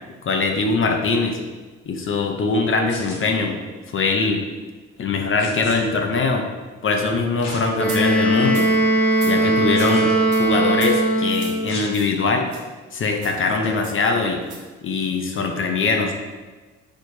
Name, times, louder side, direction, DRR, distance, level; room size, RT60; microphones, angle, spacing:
voice 1, 0.2-1.4 1.9-3.6 3.9-4.4 5.0-6.5 6.8-8.7 9.2-10.1 10.4-12.5 12.9-14.4 14.8-16.1, left 3 dB, 45° left, 3 dB, 0.6 m, -22 dB
sound 1, 2.9-3.2 5.4-5.8 7.4-7.6 8.2-8.3 9.7-10.1 11.7-11.9 13.5-13.7, left 2 dB, 90° left, 1.1 m, -36 dB
Wind instrument woodwind instrument, 7.8-11.7, right 1 dB, 5° left, 0.8 m, -19 dB
sound 2, 7.8-8.0 8.5-8.7 9.1-9.3 9.8-9.9 10.3-10.4 10.7-10.9 11.3-11.6 11.9-12.1 12.5-12.6 13.2-13.4 13.8-14.0 14.4-14.6, right 4 dB, 70° right, 1.2 m, -37 dB
4.6 x 4.3 x 2.7 m, 1.3 s
cardioid pair, 90°, 30 cm